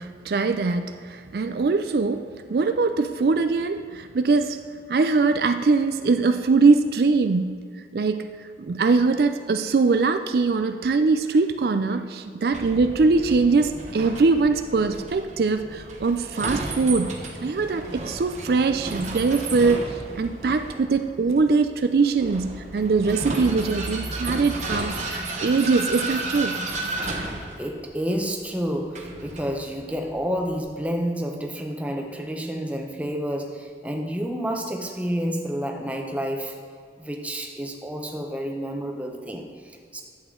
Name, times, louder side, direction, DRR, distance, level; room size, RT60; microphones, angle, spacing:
voice 1, 0.0-4.6 4.9-7.6 7.9-8.3 8.6-26.6, right 4 dB, 60° right, 8 dB, 0.4 m, -22 dB
Vehicle, 12.5-30.6, right 2 dB, 40° right, 1.1 m, -33 dB
voice 2, 27.6-36.6 37.0-40.0, equal, 10° right, 2 dB, 0.8 m, -29 dB
11.5 x 8.0 x 3.8 m, 2.1 s
head